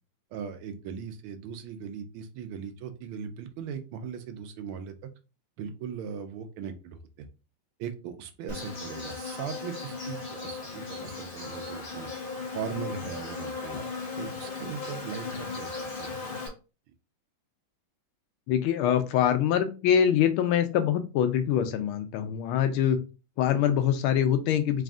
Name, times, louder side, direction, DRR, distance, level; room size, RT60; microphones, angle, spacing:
voice 1, 0.3-4.9 5.6-7.3 7.8-12.1 12.5-13.8 14.2-16.3, right 7 dB, 85° right, 8 dB, 1.5 m, -39 dB
Insect, 8.5-16.5, left 4 dB, 50° left, 0.6 m, -37 dB
voice 2, 18.5-23.0 23.4-24.8, left 9 dB, 90° left, 9 dB, 1.5 m, -24 dB
4.1 x 2.5 x 3.5 m, 0.32 s
omnidirectional pair, 2.3 m